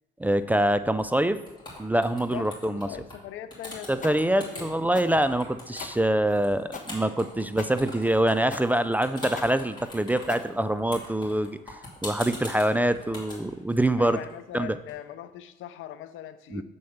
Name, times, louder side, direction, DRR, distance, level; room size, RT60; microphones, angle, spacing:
voice 1, 0.2-1.4 1.8-2.9 3.9-11.6 12.0-14.2 14.5-14.8 16.5-16.6, right 1 dB, 10° right, 11 dB, 0.3 m, -25 dB
sound 1, 1.0-1.2 1.5-3.2 3.5-4.7 5.1-14.9, left 2 dB, 20° left, 2.9 m, -42 dB
voice 2, 2.3-4.7 14.0-16.6, left 11 dB, 80° left, 12 dB, 0.5 m, -41 dB
sound 2, 4.0-11.1, left 4 dB, 40° left, 1.1 m, -42 dB
7.0 x 4.3 x 6.4 m, 1.0 s
cardioid pair, 90°, 20 cm